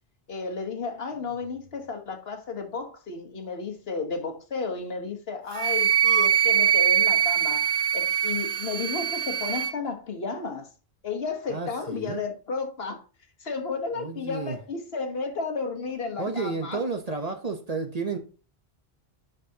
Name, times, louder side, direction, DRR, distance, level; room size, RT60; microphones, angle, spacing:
voice 1, 0.3-10.7 11.0-13.0 13.4-16.8, left 4 dB, 65° left, 1.4 m, -33 dB
Wind instrument woodwind instrument, 5.6-9.7, right 9 dB, 65° right, 0.3 m, -23 dB
voice 2, 11.5-12.2 13.9-14.6 16.2-18.2, right 4 dB, 40° right, 0.9 m, -31 dB
10.0 x 4.0 x 2.8 m
omnidirectional pair, 1.1 m